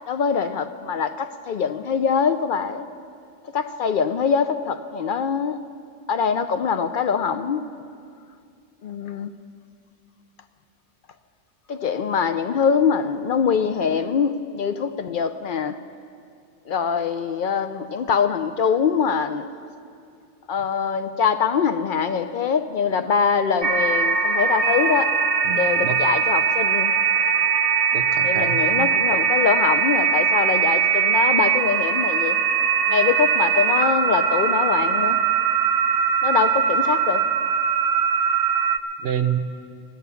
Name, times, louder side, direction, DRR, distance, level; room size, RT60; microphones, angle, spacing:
voice 1, 0.1-2.9 3.5-5.6 6.1-7.6 8.8-9.3 11.7-15.8 16.7-19.5 20.5-25.1 25.5-26.9 28.2-32.4 32.9-35.2 36.2-37.2, left 6 dB, 60° left, 9 dB, 0.6 m, -23 dB
sound 1, 23.6-38.8, right 6 dB, 50° right, 0.4 m, -21 dB
voice 2, 25.4-26.0 27.9-28.9 39.0-39.4, right 10 dB, 65° right, 10 dB, 0.9 m, -27 dB
15.0 x 10.5 x 6.9 m, 2.3 s
omnidirectional pair, 1.2 m